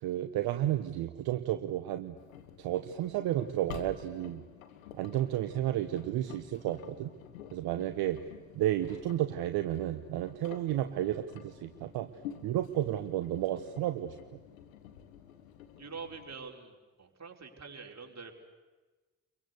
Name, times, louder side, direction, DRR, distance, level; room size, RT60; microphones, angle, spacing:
voice 1, 0.0-2.2 2.6-4.4 5.0-7.1 7.5-8.2 8.5-12.1 12.4-14.1, right 13 dB, 70° right, 9 dB, 1.1 m, -32 dB
Engine, 2.2-16.3, left 9 dB, 85° left, 1.5 m, -50 dB
voice 2, 15.8-18.3, right 5 dB, 40° right, 2 dB, 4.7 m, -45 dB
29.5 x 23.0 x 8.3 m, 1.3 s
hypercardioid pair, 40°, 40 cm